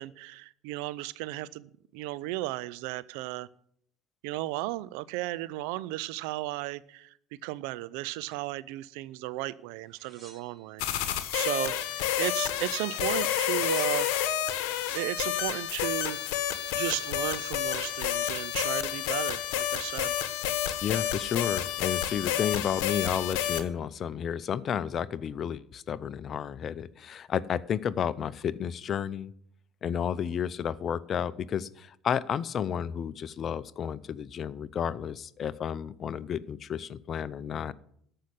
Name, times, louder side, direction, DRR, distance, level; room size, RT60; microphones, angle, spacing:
voice 1, 0.0-3.5 4.2-7.1 7.4-14.1 14.9-16.2 16.7-20.1, right 18 dB, 75° right, 17 dB, 0.5 m, -35 dB
sound 1, 9.9-11.3 11.7-12.5 13.2-14.3 15.9-16.0 16.2-17.2 17.9-18.4, right 3 dB, 30° right, 4.3 m, -52 dB
sound 2, 10.8-23.6, left 11 dB, 75° left, 1.1 m, -30 dB
voice 2, 20.8-29.3 29.8-37.7, left 8 dB, 50° left, 18 dB, 0.6 m, -32 dB
13.5 x 5.6 x 8.4 m, 0.67 s
hypercardioid pair, 65°, 0 cm